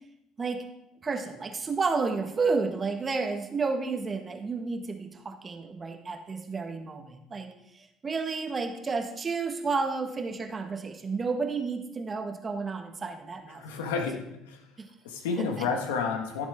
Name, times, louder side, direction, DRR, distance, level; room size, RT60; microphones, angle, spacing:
voice 1, 1.0-13.6 14.8-14.9 15.4-15.7, right 4 dB, 35° right, 5 dB, 1.5 m, -31 dB
voice 2, 13.6-14.1 14.5-14.6 15.0-16.5, left 5 dB, 85° left, 3 dB, 1.5 m, -30 dB
15.0 x 7.0 x 3.7 m, 0.83 s
hypercardioid pair, 65°, 0 cm